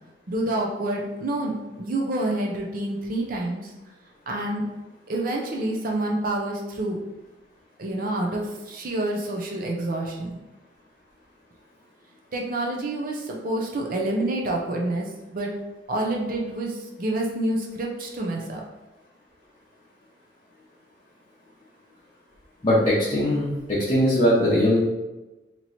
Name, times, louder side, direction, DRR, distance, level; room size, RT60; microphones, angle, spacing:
voice 1, 0.3-3.7 4.3-4.7 5.1-7.0 7.8-10.4 12.3-15.5 15.9-18.6, right 1 dB, 50° right, -1 dB, 0.6 m, -28 dB
voice 2, 22.6-24.8, equal, 30° left, -8 dB, 0.8 m, -20 dB
3.0 x 2.9 x 4.0 m, 1.1 s
head